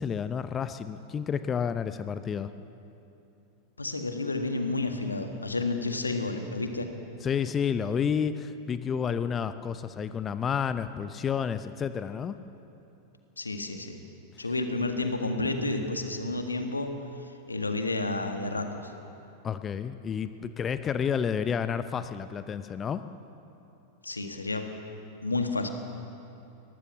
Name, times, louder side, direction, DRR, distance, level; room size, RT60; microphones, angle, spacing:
voice 1, 0.0-2.5 7.2-12.4 19.4-23.0, left 7 dB, 25° left, 12 dB, 0.7 m, -30 dB
voice 2, 3.8-6.9 13.4-14.0 14.4-16.9 17.5-18.9 24.0-24.7 25.2-25.7, left 2 dB, 80° left, 5 dB, 1.9 m, -30 dB
22.5 x 19.0 x 7.2 m, 2.8 s
figure-of-eight pair, 90°, 0 cm